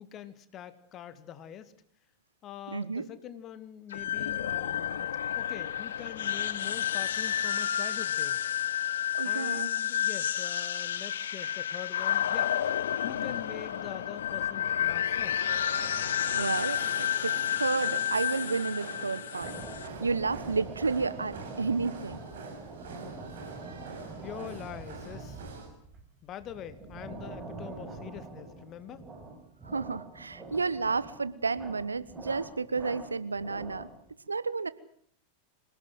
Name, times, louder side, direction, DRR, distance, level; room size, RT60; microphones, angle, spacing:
voice 1, 0.0-1.7 2.4-8.5 9.2-15.4 23.4-23.5 24.2-25.4 26.2-29.1, left 10 dB, 30° left, 13 dB, 2.1 m, -44 dB
voice 2, 2.7-3.1 9.1-9.7 16.3-19.6 20.0-22.2 29.6-33.9 34.3-34.7, right 4 dB, 75° right, 17 dB, 1.1 m, -31 dB
sound 1, 3.9-19.9, left 10 dB, 65° left, 1.2 m, -31 dB
sound 2, 15.5-25.7, right 4 dB, 60° right, 7.3 m, -45 dB
sound 3, 19.4-34.1, right 3 dB, 20° right, 5.8 m, -44 dB
27.0 x 18.5 x 7.9 m, 0.63 s
figure-of-eight pair, 90°, 0 cm